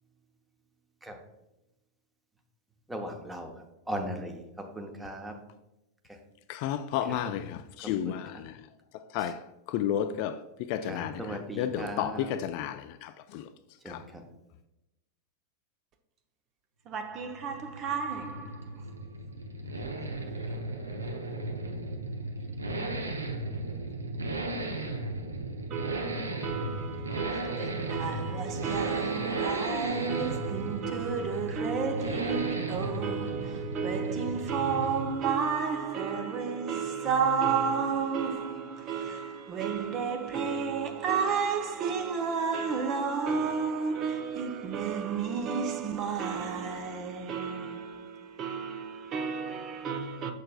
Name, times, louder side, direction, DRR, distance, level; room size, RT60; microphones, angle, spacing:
voice 1, 2.9-3.5 3.9-4.4 4.8-5.3 7.1-7.3 8.0-8.2 9.2-9.3 10.8-12.3 13.8-14.2, right 1 dB, 5° right, 0.9 m, -37 dB
voice 2, 6.5-7.6 7.9-8.2 9.1-9.4 9.7-10.3 10.7-13.4 13.9-14.0, left 10 dB, 45° left, 0.3 m, -31 dB
voice 3, 16.9-18.6 25.7-50.3, right 6 dB, 35° right, 0.7 m, -31 dB
Accelerating revving vroom, 17.1-35.3 35.5-35.6, right 2 dB, 75° right, 0.7 m, -35 dB
6.5 x 6.4 x 2.3 m
figure-of-eight pair, 90°, 0 cm